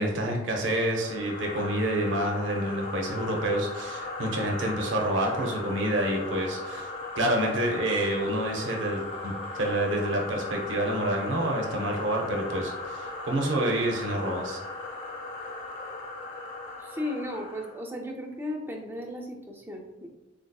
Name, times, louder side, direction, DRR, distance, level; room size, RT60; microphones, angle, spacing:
voice 1, 0.0-6.9 7.2-14.6, right 1 dB, 80° right, 1 dB, 0.6 m, -28 dB
sound 1, 0.7-17.8, left 2 dB, 25° left, 0.7 m, -38 dB
voice 2, 16.8-20.1, left 1 dB, 10° right, 2 dB, 0.4 m, -35 dB
3.8 x 2.6 x 2.2 m, 1.0 s
head